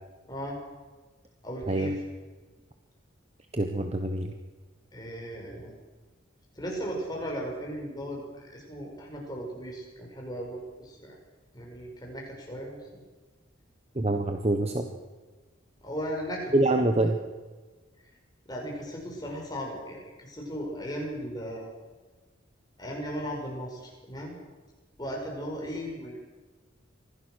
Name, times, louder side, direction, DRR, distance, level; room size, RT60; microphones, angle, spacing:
voice 1, 0.3-0.6 1.4-2.0 4.9-5.7 6.6-8.2 8.5-11.2 11.5-13.0 15.8-16.6 18.5-21.7 22.8-24.4 25.0-26.2, equal, 20° left, -1 dB, 5.8 m, -36 dB
voice 2, 3.5-4.3 13.9-14.9 16.5-17.2, right 1 dB, 30° right, 6 dB, 1.2 m, -25 dB
25.0 x 16.5 x 6.5 m, 1.3 s
head